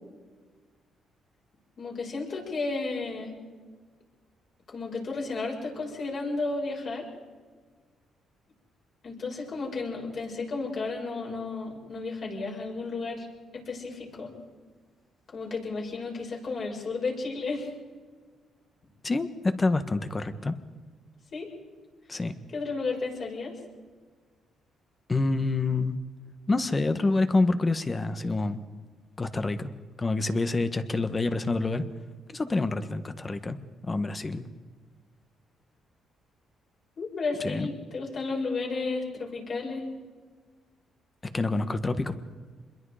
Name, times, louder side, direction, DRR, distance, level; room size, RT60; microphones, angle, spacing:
voice 1, 1.8-3.3 4.7-7.0 9.0-13.3 13.5-14.3 15.3-17.7 21.3-21.5 22.5-23.5 37.0-39.8, left 3 dB, 50° left, -1 dB, 7.1 m, -33 dB
voice 2, 19.0-20.6 22.1-22.3 25.1-26.0 26.5-28.6 29.2-29.7 30.0-31.8 32.3-33.6 33.9-34.4 37.4-37.7 41.3-42.2, left 3 dB, 25° left, 10 dB, 1.5 m, -27 dB
26.5 x 22.0 x 5.1 m, 1.5 s
cardioid pair, 90°, 0 cm